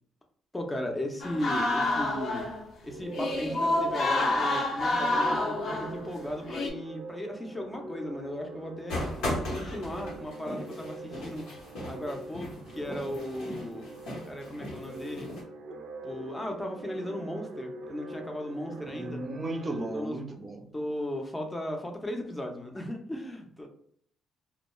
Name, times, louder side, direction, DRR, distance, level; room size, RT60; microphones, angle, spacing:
voice 1, 0.5-2.5 2.8-9.0 9.5-11.5 11.9-13.9 14.2-15.3 16.0-19.2 19.9-20.2 20.7-23.7, equal, 15° left, 0.5 m, -36 dB
sound 1, 1.2-2.7 3.1-6.0 6.4-6.7, left 2 dB, 60° left, 0.6 m, -28 dB
sound 2, 2.8-20.0, right 2 dB, 90° right, 0.4 m, -43 dB
sound 3, 8.9-15.4, left 1 dB, 85° left, 1.0 m, -37 dB
voice 2, 18.9-20.7, right 2 dB, 30° right, 0.5 m, -35 dB
2.3 x 2.2 x 2.9 m
cardioid pair, 90°, 0 cm